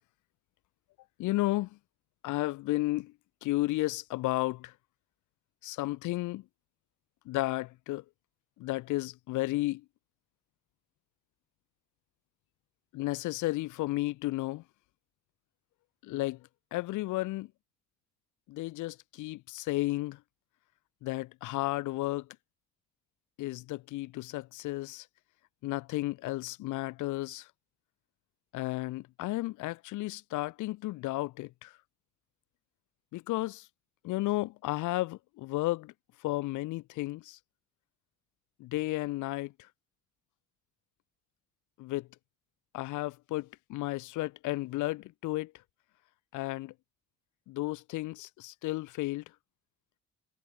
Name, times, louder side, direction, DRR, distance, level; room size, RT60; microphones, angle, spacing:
voice 1, 1.2-1.7 2.2-3.1 3.4-4.7 5.6-6.4 7.3-8.0 8.6-9.8 12.9-14.6 16.0-16.4 16.7-17.5 18.5-20.2 21.0-22.3 23.4-25.1 25.6-27.5 28.5-31.7 33.1-33.6 34.0-35.9 36.2-37.4 38.6-39.5 41.8-42.1 42.7-45.5 46.3-46.7 47.5-49.2, left 18 dB, 80° left, 0.5 m, -33 dB
cardioid pair, 90°, 30 cm